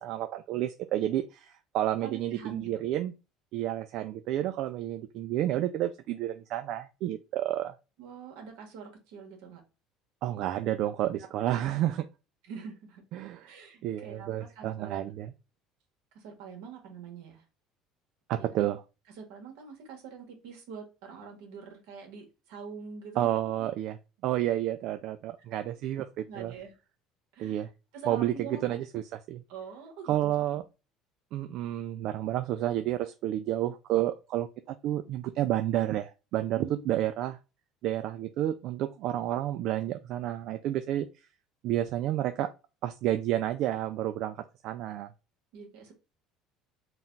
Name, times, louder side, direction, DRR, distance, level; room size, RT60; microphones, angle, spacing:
voice 1, 0.0-3.1 3.5-7.7 10.2-12.0 13.1-13.4 13.8-15.3 18.3-18.8 23.2-24.0 24.2-26.5 27.4-27.7 28.1-29.0 29.3-29.4 30.0-30.6 31.3-37.4 37.8-41.1 41.6-42.5 42.8-44.4 44.6-45.1, right 13 dB, 60° right, 0.3 m, -30 dB
voice 2, 2.0-2.7 8.0-9.6 11.2-11.3 12.4-13.0 13.4-15.1 16.1-17.4 18.4-18.7 19.2-23.3 26.3-26.7 27.3-28.6 29.5-30.6 36.5-36.9 45.5-45.9, right 6 dB, 80° right, 1.6 m, -44 dB
3.9 x 2.4 x 3.8 m
cardioid pair, 115°, 0 cm